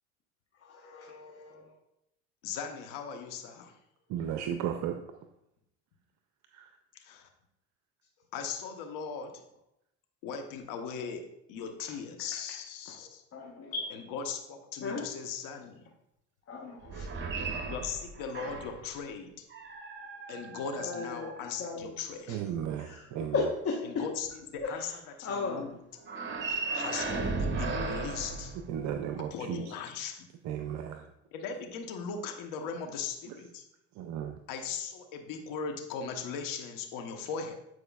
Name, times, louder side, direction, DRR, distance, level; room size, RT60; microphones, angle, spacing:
voice 1, 0.6-1.7 11.0-11.1 13.3-13.9 14.8-15.0 16.5-17.1 20.8-21.3 21.6-21.9 22.3-22.4 22.8-23.0 23.3-23.8 24.6-24.9 25.2-25.6, left 3 dB, 45° left, -2 dB, 1.2 m, -35 dB
voice 2, 2.4-3.7 7.0-7.3 8.3-9.4 10.2-13.2 13.9-15.9 17.7-19.4 20.3-22.4 23.8-24.9 25.2-25.8 26.7-28.6 29.3-30.3 31.3-33.6 34.5-37.5, left 6 dB, 70° left, 5 dB, 1.1 m, -38 dB
voice 3, 4.1-5.0 6.5-6.7 22.3-23.5 28.7-29.7 30.4-31.1 33.3-33.4 33.9-34.4, right 9 dB, 60° right, 5 dB, 0.5 m, -35 dB
sound 1, 16.8-18.9 19.5-21.9 26.0-29.2, right 3 dB, 35° right, 1.1 m, -36 dB
9.0 x 4.7 x 2.4 m, 0.82 s
supercardioid pair, 90°, 33 cm